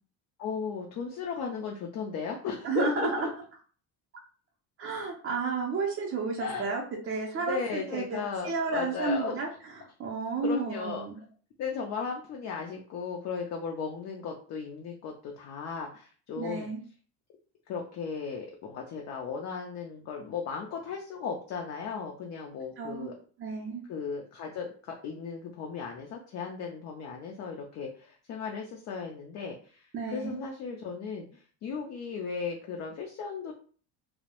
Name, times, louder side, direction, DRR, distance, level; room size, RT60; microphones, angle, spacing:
voice 1, 0.4-3.3 6.4-6.7 7.4-9.4 10.4-11.1 11.6-16.7 17.7-23.1 23.9-29.9 30.1-33.5, left 5 dB, 45° left, 1 dB, 0.4 m, -36 dB
voice 2, 2.6-3.3 4.8-9.5 10.0-11.2 16.4-16.8 22.8-23.1 23.4-23.8 29.9-30.4, right 4 dB, 35° right, -2 dB, 0.4 m, -31 dB
2.2 x 2.0 x 2.8 m, 0.42 s
cardioid pair, 140°, 40 cm